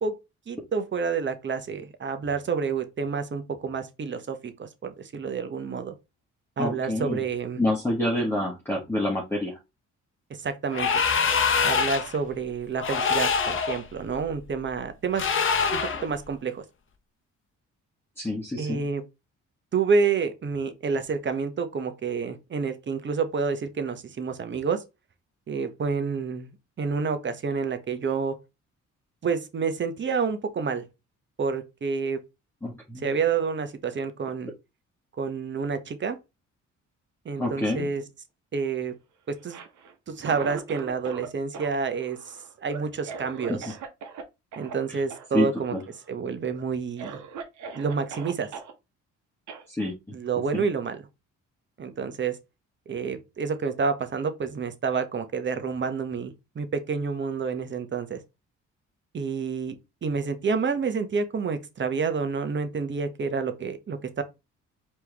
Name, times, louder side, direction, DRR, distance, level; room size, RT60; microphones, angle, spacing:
voice 1, 0.5-5.9 6.6-7.6 10.4-11.0 11.6-15.3 15.7-16.6 18.6-19.0 19.7-24.8 25.5-26.5 26.8-28.3 29.2-30.9 31.4-32.2 33.0-34.5 35.2-36.2 37.2-38.0 38.5-38.9 39.3-39.6 40.1-43.8 44.6-45.7 46.1-47.2 47.7-48.5 50.1-51.0 51.8-52.4 52.9-58.2 59.1-59.8 60.0-64.2, right 5 dB, 40° right, 0.9 m, -29 dB
voice 2, 6.6-7.2 7.6-9.6 18.2-18.9 32.6-33.1 37.4-37.9 43.5-43.6 44.9-45.0 45.3-45.8 49.7-49.9 50.5-50.6, left 1 dB, 5° left, 1.3 m, -27 dB
sound 1, 10.7-12.2 12.8-13.8 15.1-16.1, left 5 dB, 40° left, 0.9 m, -24 dB
Cough, 39.4-41.3 41.5-44.2 44.5-44.7 45.1-45.3 45.6-46.1 46.5-46.6 47.0-48.7 49.5-49.6, right 6 dB, 70° right, 1.0 m, -39 dB
4.5 x 3.0 x 3.4 m
cardioid pair, 90°, 30 cm